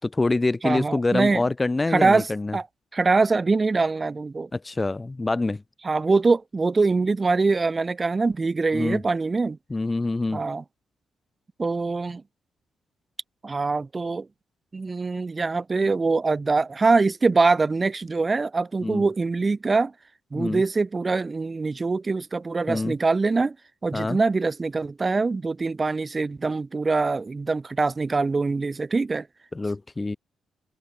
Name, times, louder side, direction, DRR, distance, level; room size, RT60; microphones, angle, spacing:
voice 1, 0.0-2.6 4.5-5.6 8.7-9.0 9.7-10.4 18.8-19.0 20.3-20.6 22.7-22.9 23.9-24.2 29.5-30.2, left 2 dB, 20° left, 6.7 m, -25 dB
voice 2, 0.6-1.4 1.9-2.7 2.9-4.5 5.8-9.6 10.3-10.6 11.6-12.2 13.4-14.3 14.7-19.9 20.3-23.6 23.8-29.3, right 3 dB, 25° right, 7.8 m, -23 dB
open air
cardioid pair, 115°, 0 cm